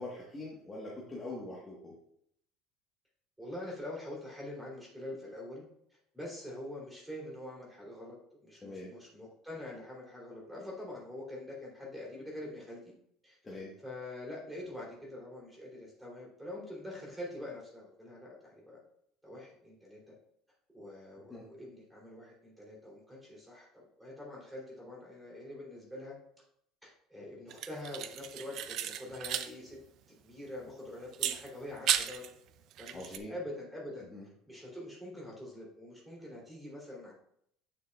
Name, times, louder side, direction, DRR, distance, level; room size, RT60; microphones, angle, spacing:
voice 1, 0.0-1.9 8.6-8.9 13.4-13.7 21.3-21.5 32.9-33.3 34.1-34.3, left 2 dB, 15° left, -5 dB, 1.4 m, -43 dB
voice 2, 3.4-5.6 6.1-8.2 8.4-12.8 13.2-18.8 19.2-20.1 20.7-26.2 26.8-29.8 30.1-32.2 32.8-34.1 34.5-37.1, left 1 dB, 5° right, -4 dB, 3.1 m, -45 dB
sound 1, 27.5-29.5 29.8-29.9 31.1-32.3 32.7-33.2, right 10 dB, 50° right, 0.5 m, -34 dB
8.6 x 6.8 x 2.4 m, 0.71 s
cardioid pair, 150°, 0 cm